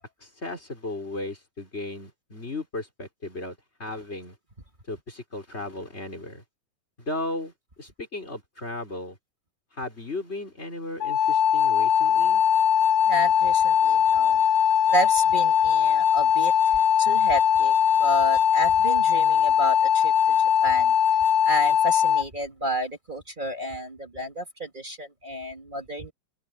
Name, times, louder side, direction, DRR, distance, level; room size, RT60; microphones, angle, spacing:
voice 1, 0.2-4.4 4.9-6.4 7.0-7.5 7.8-9.2 9.7-12.4, left 2 dB, 20° left, 5.0 m, -35 dB
sound 1, 11.0-22.2, left 8 dB, 85° left, 1.0 m, -20 dB
voice 2, 13.1-14.4 14.9-20.9 21.4-26.1, equal, 20° right, 1.5 m, -31 dB
open air
omnidirectional pair, 3.9 m